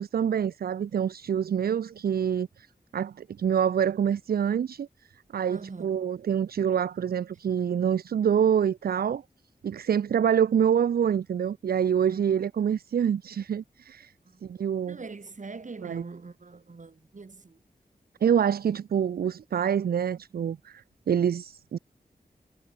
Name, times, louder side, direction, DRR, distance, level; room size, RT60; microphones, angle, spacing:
voice 1, 0.0-2.7 2.9-4.9 5.3-9.2 9.6-14.1 14.4-15.0 15.8-16.0 18.2-21.8, right 8 dB, 75° right, 0.4 m, -26 dB
voice 2, 5.5-6.0 12.1-12.2 14.3-14.4 14.9-17.6, right 4 dB, 55° right, 2.1 m, -42 dB
wide cardioid pair, 85°, 16 cm